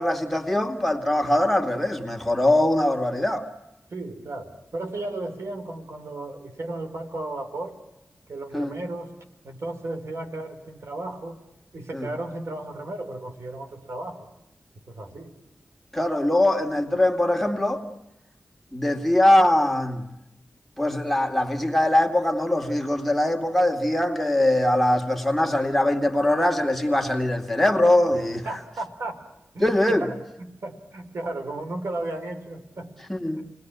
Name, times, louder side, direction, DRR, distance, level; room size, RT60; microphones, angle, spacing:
voice 1, 0.0-3.5 8.5-8.7 11.9-12.1 15.9-17.8 18.7-20.1 20.8-28.5 29.6-30.1 33.1-33.4, left 1 dB, 5° left, 2.4 m, -22 dB
voice 2, 3.9-7.8 8.3-9.1 9.4-11.4 11.7-14.3 14.9-15.3 28.4-29.2 29.5-32.9 33.4-33.5, right 2 dB, 70° right, 2.9 m, -34 dB
28.0 x 19.5 x 9.5 m
wide cardioid pair, 65°, 5 cm